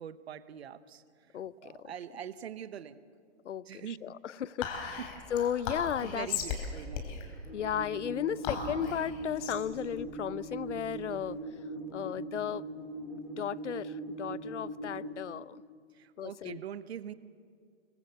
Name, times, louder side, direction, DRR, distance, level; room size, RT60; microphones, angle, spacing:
voice 1, 0.0-3.0 3.6-4.2 5.0-5.1 6.0-7.2 15.9-17.1, right 9 dB, 60° right, 13 dB, 1.2 m, -43 dB
voice 2, 1.3-1.9 3.4-5.0 5.3-6.3 7.5-11.4 11.9-12.6 13.4-15.6 16.2-16.6, left 9 dB, 80° left, 20 dB, 0.8 m, -35 dB
Whispering, 4.6-11.3, left 6 dB, 30° left, 3.7 m, -38 dB
sound 1, 7.5-15.0, right 2 dB, 10° right, 3.8 m, -40 dB
25.0 x 23.0 x 8.1 m, 2.1 s
hypercardioid pair, 155°, 35 cm